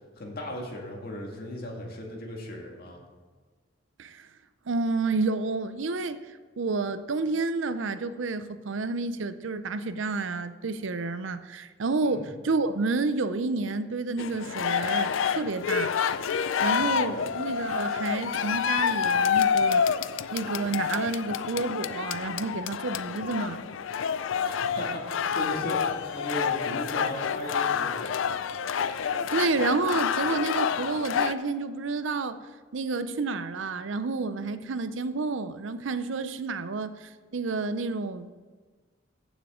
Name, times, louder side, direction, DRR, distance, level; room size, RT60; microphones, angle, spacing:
voice 1, 0.2-3.0 12.0-12.3 16.9-17.3 24.4-28.1, equal, 50° left, 0 dB, 2.0 m, -37 dB
voice 2, 4.7-6.2 6.6-15.9 16.6-19.8 20.3-23.7 28.9-32.4 32.7-38.3, right 3 dB, 70° right, 12 dB, 0.6 m, -30 dB
sound 1, 14.2-31.3, left 7 dB, 80° left, 0.4 m, -28 dB
15.0 x 7.3 x 3.7 m, 1.5 s
head